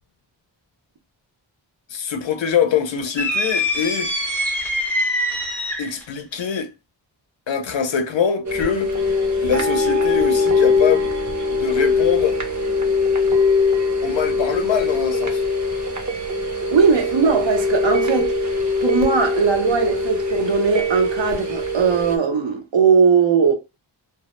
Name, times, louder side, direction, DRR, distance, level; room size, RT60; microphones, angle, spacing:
voice 1, 1.9-4.1 5.8-6.7 7.5-8.9 9.4-11.2 11.5-12.4 14.0-15.4, left 7 dB, 80° left, 0.6 m, -23 dB
sound 1, 3.2-6.0, left 1 dB, 5° left, 0.5 m, -23 dB
sound 2, 8.4-22.2, left 3 dB, 40° right, 0.7 m, -21 dB
voice 2, 16.7-18.3 18.8-23.5, right 5 dB, 75° right, 0.7 m, -18 dB
2.1 x 2.0 x 2.9 m
wide cardioid pair, 75°, 45 cm